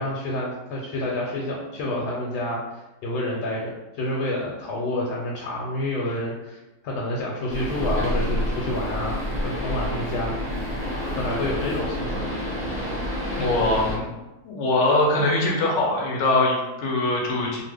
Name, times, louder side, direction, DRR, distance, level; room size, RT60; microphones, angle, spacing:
voice 1, 0.0-6.6 6.8-10.3 11.2-12.3, left 1 dB, 80° left, -3 dB, 1.2 m, -28 dB
sound 1, 7.5-14.0, equal, 10° left, 0.7 m, -28 dB
voice 2, 13.4-14.0 14.4-17.6, left 2 dB, 65° left, -1 dB, 0.7 m, -22 dB
2.8 x 2.2 x 3.3 m, 1.0 s
omnidirectional pair, 1.8 m